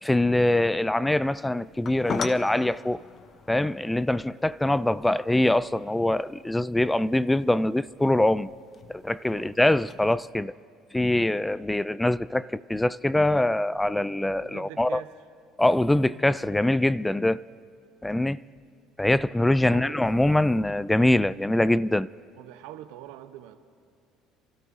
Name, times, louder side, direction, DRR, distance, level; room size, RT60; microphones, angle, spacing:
voice 1, 0.0-3.0 3.5-8.5 8.9-10.5 10.9-15.0 15.6-17.4 18.0-18.4 19.0-22.1, left 1 dB, 10° left, 0.3 m, -23 dB
sound 1, 1.2-10.2, left 5 dB, 45° left, 0.7 m, -41 dB
voice 2, 9.3-9.6 14.4-15.1 19.6-20.0 22.4-23.6, right 13 dB, 80° right, 0.9 m, -43 dB
28.5 x 13.0 x 2.7 m
supercardioid pair, 80°, 0 cm